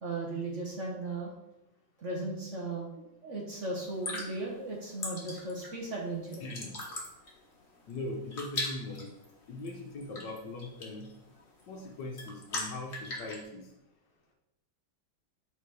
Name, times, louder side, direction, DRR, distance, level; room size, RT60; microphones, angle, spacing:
voice 1, 0.0-1.3 2.0-2.9 3.2-6.4, right 2 dB, 45° right, -2 dB, 1.2 m, -36 dB
sound 1, 3.8-13.4, left 2 dB, 35° left, 1.5 m, -41 dB
voice 2, 6.4-6.8 7.9-9.1 9.5-11.1 11.7-13.7, left 2 dB, 65° left, 1 dB, 1.6 m, -40 dB
6.6 x 4.3 x 4.7 m, 0.89 s
omnidirectional pair, 2.2 m